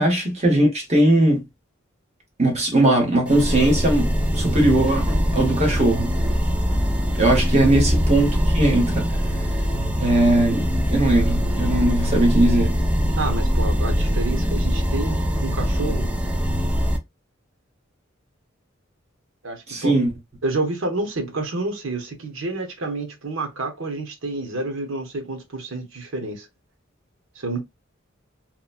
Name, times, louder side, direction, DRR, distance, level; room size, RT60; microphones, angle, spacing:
voice 1, 0.0-1.4 2.4-6.2 7.1-9.1 10.0-12.8 19.7-20.1, right 1 dB, 35° right, 1.1 m, -19 dB
sound 1, 3.3-17.0, equal, 5° right, 0.4 m, -22 dB
voice 2, 13.2-16.1 19.4-20.0 20.4-26.5 27.3-27.6, right 2 dB, 80° right, 0.9 m, -29 dB
2.9 x 2.2 x 2.4 m
head